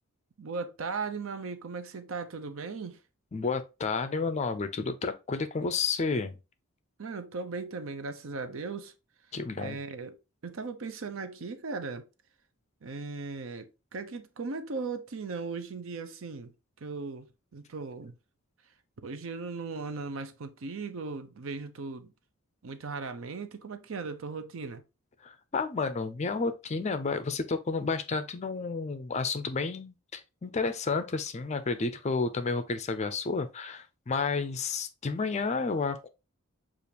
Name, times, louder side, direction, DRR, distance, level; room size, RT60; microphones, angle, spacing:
voice 1, 0.4-3.0 7.0-8.9 9.6-10.2 10.4-12.1 12.8-16.5 16.8-18.1 19.0-22.1 22.6-24.8, right 4 dB, 65° right, 0.6 m, -37 dB
voice 2, 3.3-6.4 9.3-9.8 25.2-36.1, left 4 dB, 30° left, 0.4 m, -31 dB
6.8 x 2.5 x 2.8 m
head